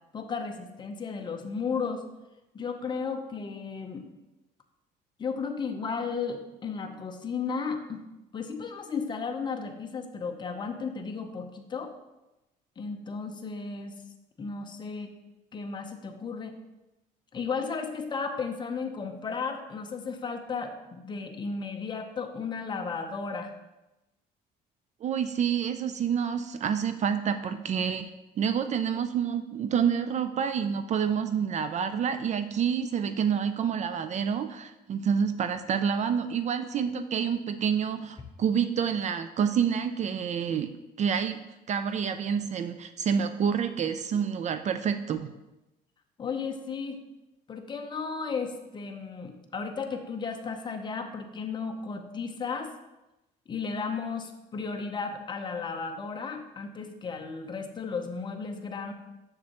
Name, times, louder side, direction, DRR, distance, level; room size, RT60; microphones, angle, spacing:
voice 1, 0.1-2.0 2.5-4.1 5.2-8.0 8.3-11.9 12.8-14.0 14.4-15.1 15.5-16.5 17.3-23.5 46.2-47.0 47.5-52.7 53.5-58.9, left 5 dB, 25° left, 4 dB, 0.7 m, -34 dB
voice 2, 25.0-28.1 28.4-41.4 41.7-45.3, right 7 dB, 45° right, 10 dB, 0.4 m, -28 dB
7.2 x 6.5 x 3.0 m, 0.98 s
cardioid pair, 110°, 17 cm